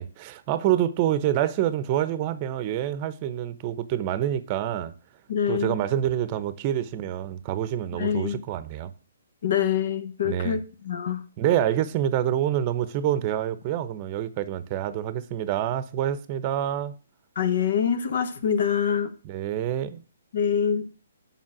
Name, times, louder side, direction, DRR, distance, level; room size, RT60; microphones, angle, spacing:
voice 1, 0.0-4.9 5.5-8.9 10.2-10.6 11.4-16.9 19.2-20.0, right 11 dB, 30° right, 0.8 m, -27 dB
voice 2, 5.3-5.8 8.0-8.4 9.4-11.2 17.3-19.1 20.3-20.8, left 8 dB, 60° left, 1.3 m, -25 dB
7.3 x 5.6 x 6.0 m
hypercardioid pair, 145°, 0 cm